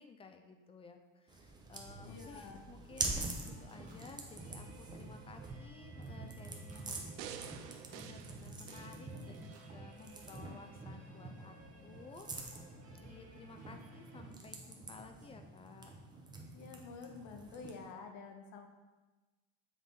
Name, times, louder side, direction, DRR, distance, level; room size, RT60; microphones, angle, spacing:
voice 1, 0.0-11.6 11.8-12.3 12.5-15.9, left 4 dB, 20° left, 6 dB, 0.3 m, -55 dB
sound 1, 1.3-17.9, right 2 dB, 15° right, 0.6 m, -46 dB
voice 2, 2.0-2.6 16.5-18.7, left 5 dB, 70° left, 4 dB, 0.9 m, -49 dB
sound 2, 2.9-14.3, right 3 dB, 50° right, 1.2 m, -58 dB
sound 3, 7.2-9.7 10.2-10.3, right 9 dB, 75° right, 0.5 m, -50 dB
7.5 x 3.4 x 3.8 m, 1.2 s
cardioid pair, 130°, 32 cm